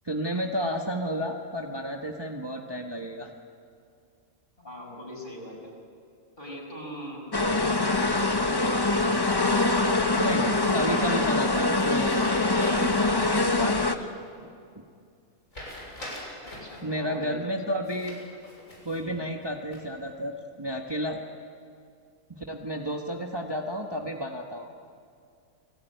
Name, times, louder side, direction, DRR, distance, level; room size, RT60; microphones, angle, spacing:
voice 1, 0.0-3.3 10.2-14.1 16.8-18.2 18.8-21.2 22.3-24.7, equal, 20° right, 1 dB, 1.4 m, -32 dB
voice 2, 4.6-5.7 6.4-9.0 16.4-17.4 19.0-19.2, left 1 dB, 40° left, -1 dB, 6.5 m, -42 dB
sound 1, 7.3-14.0, left 2 dB, 20° left, 1.2 m, -24 dB
sound 2, 8.6-9.6 11.8-13.0 13.4-13.5 15.5-16.8 17.8-19.0 19.5-20.1, left 1 dB, 90° left, 7.3 m, -43 dB
29.5 x 19.5 x 9.3 m, 2.4 s
omnidirectional pair, 1.4 m